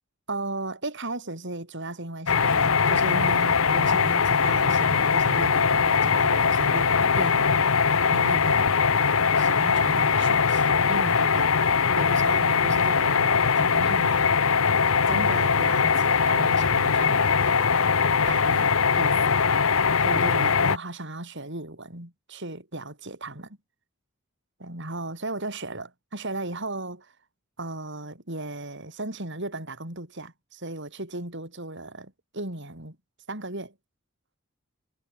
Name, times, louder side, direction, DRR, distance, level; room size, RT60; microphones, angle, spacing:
voice 1, 0.3-7.7 8.1-8.8 9.4-11.5 11.9-14.3 15.1-17.7 18.3-19.4 20.0-23.6 24.6-27.1 27.6-33.0 33.3-33.7, right 2 dB, 55° right, 7.1 m, -35 dB
sound 1, 2.3-20.8, left 5 dB, 70° left, 1.1 m, -21 dB
head